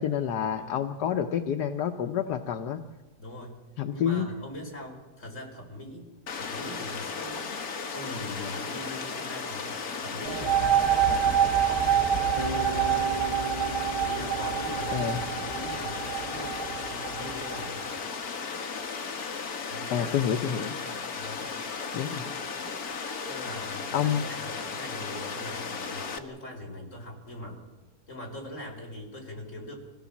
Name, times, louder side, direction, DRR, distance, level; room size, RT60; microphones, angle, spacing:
voice 1, 0.0-2.8 3.8-4.3 14.9-15.2 19.9-20.7 21.9-22.2 23.9-24.2, left 8 dB, 80° left, 7 dB, 1.5 m, -28 dB
voice 2, 0.5-0.8 3.2-3.6 3.9-6.1 6.3-7.5 7.9-13.0 14.0-17.9 19.7-20.2 21.2-21.5 23.3-27.6 28.1-29.7, left 1 dB, 45° left, 2 dB, 5.3 m, -41 dB
Water, 6.3-26.2, left 5 dB, 65° left, 2.0 m, -35 dB
sound 1, 10.2-17.7, right 9 dB, 80° right, 2.1 m, -27 dB
Bass guitar, 12.4-16.4, right 2 dB, 30° right, 0.6 m, -39 dB
26.0 x 17.0 x 7.3 m, 1.2 s
omnidirectional pair, 1.7 m